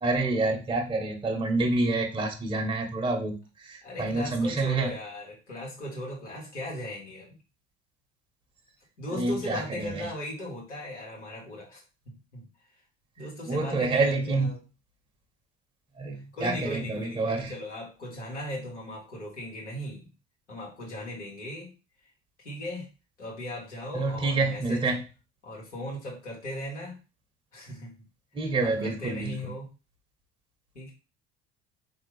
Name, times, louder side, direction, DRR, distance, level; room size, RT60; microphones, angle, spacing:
voice 1, 0.0-4.9 9.2-10.1 13.5-14.5 16.0-17.5 23.9-25.0 28.4-29.3, right 3 dB, 15° right, 1 dB, 0.8 m, -28 dB
voice 2, 3.8-7.3 9.0-11.8 12.0-12.4 13.2-14.6 16.3-20.1 20.5-21.7 22.4-22.9 23.2-25.0 25.4-27.0 27.5-28.0 28.3-29.7 30.7-30.9, left 1 dB, 85° left, -4 dB, 1.4 m, -38 dB
3.7 x 2.7 x 3.1 m, 0.31 s
figure-of-eight pair, 60°, 35 cm